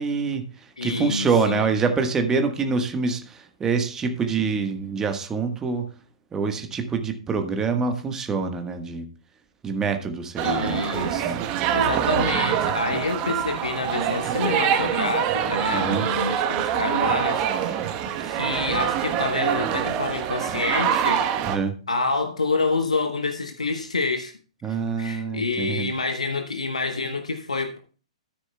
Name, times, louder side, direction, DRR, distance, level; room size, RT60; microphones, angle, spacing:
voice 1, 0.0-5.8 6.3-9.1 9.6-11.4 15.7-16.1 21.5-21.7 24.6-25.9, right 5 dB, 15° right, 1.3 m, -26 dB
voice 2, 0.8-1.7 10.4-11.3 11.7-17.9 18.2-21.5 21.9-24.3 25.0-27.8, left 3 dB, 80° left, 1.0 m, -27 dB
sound 1, 10.4-21.6, right 9 dB, 30° right, 1.1 m, -25 dB
13.0 x 9.7 x 2.2 m
figure-of-eight pair, 115°, 3 cm